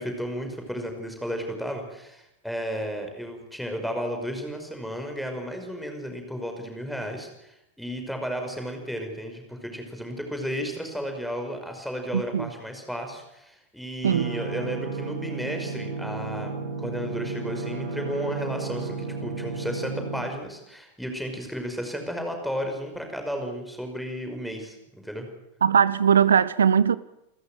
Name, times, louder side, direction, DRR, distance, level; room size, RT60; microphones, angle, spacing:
voice 1, 0.0-25.3, equal, ahead, 5.6 m, -33 dB
voice 2, 12.1-12.5 14.0-14.3 25.6-27.0, right 7 dB, 70° right, 0.8 m, -20 dB
sound 1, 14.0-20.2, right 4 dB, 45° right, 6.0 m, -33 dB
29.0 x 14.0 x 9.4 m
figure-of-eight pair, 90°, 0 cm